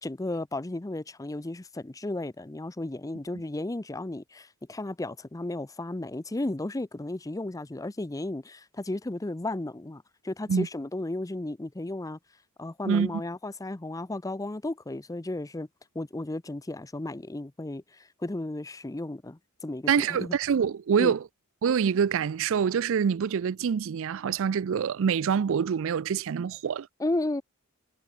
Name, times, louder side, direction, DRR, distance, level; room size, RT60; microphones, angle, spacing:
voice 1, 0.0-12.2 12.6-15.7 15.9-20.4 21.0-21.1 27.0-27.4, left 2 dB, 15° left, 0.6 m, -34 dB
voice 2, 19.9-21.2 21.6-26.9, right 7 dB, 65° right, 0.4 m, -25 dB
head